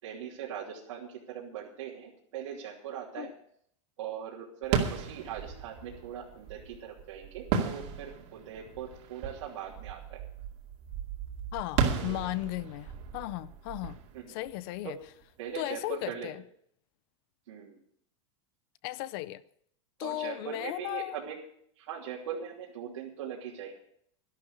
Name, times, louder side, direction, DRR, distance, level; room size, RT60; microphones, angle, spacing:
voice 1, 0.0-3.3 4.0-10.2 11.9-12.2 14.1-14.4 14.8-14.9 15.4-16.3 17.5-17.8 20.0-21.4 21.8-23.7, right 8 dB, 80° right, 3.0 m, -40 dB
sound 1, 4.6-15.2, right 7 dB, 45° right, 2.4 m, -35 dB
voice 2, 11.5-14.0 14.3-15.0 15.5-16.4 18.8-19.4 20.0-21.2, left 17 dB, 50° left, 0.6 m, -36 dB
12.5 x 11.5 x 6.6 m
supercardioid pair, 150°, 16 cm